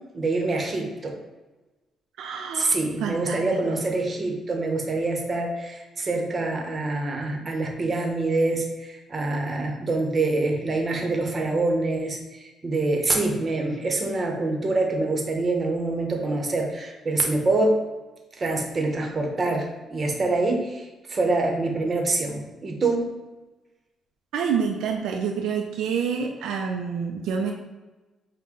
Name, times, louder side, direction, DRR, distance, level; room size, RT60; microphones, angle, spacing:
voice 1, 0.1-1.1 2.5-17.8 18.4-23.1, right 2 dB, 35° right, 2 dB, 0.9 m, -25 dB
voice 2, 2.2-3.4 3.7-3.8 24.3-27.5, right 6 dB, 85° right, 2 dB, 0.4 m, -28 dB
5.3 x 2.2 x 3.7 m, 1.2 s
cardioid pair, 90°, 0 cm